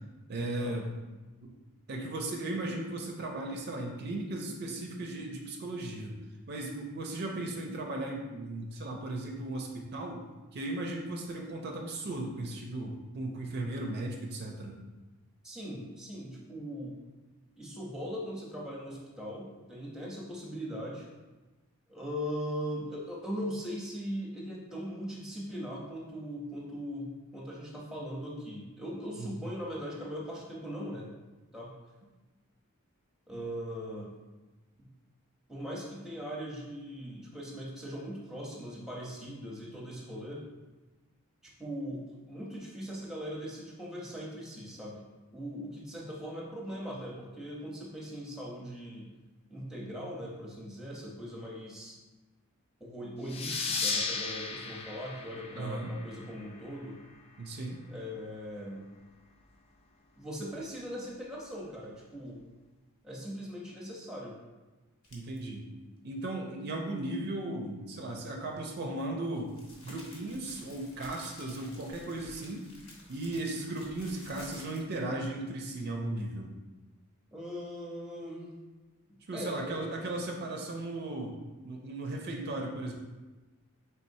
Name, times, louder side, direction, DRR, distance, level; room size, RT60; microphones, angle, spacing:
voice 1, 0.3-0.9 1.4-1.5 1.9-6.2 6.5-10.2 10.5-14.8 29.2-29.3 55.6-55.9 57.4-57.8 65.1-65.6 66.0-69.5 69.8-72.6 73.1-76.5 79.3-81.3 81.6-82.9, right 2 dB, 45° right, 2 dB, 0.4 m, -36 dB
voice 2, 15.4-17.0 17.6-21.1 21.9-31.1 31.5-31.7 33.3-34.1 34.8-34.9 35.5-40.5 41.6-45.0 45.3-49.1 49.5-52.0 52.8-57.0 57.9-58.9 60.2-62.4 63.0-64.3 77.3-78.6 79.3-79.9, equal, 5° right, -4 dB, 0.7 m, -40 dB
sound 1, 53.3-56.5, left 4 dB, 25° left, 0.3 m, -35 dB
sound 2, 65.0-65.4 68.5-75.1, left 1 dB, 70° left, 1.0 m, -53 dB
4.2 x 3.4 x 2.6 m, 1.2 s
head